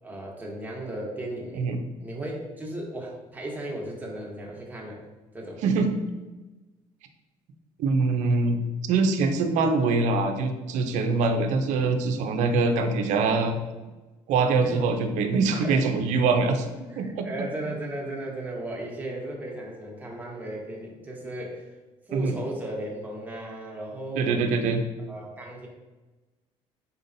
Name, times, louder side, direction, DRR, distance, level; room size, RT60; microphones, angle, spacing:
voice 1, 0.0-1.6 2.0-5.0 5.3-5.6 14.6-14.8 15.6-15.8 16.9-21.7 22.1-24.4 25.1-25.7, right 1 dB, 15° right, -2 dB, 1.3 m, -35 dB
voice 2, 7.8-8.6 8.9-13.6 14.3-16.7 17.0-17.3 22.1-22.3 24.2-24.8, right 4 dB, 70° right, 5 dB, 0.6 m, -23 dB
4.2 x 3.7 x 2.7 m, 1.1 s
supercardioid pair, 75°, 13 cm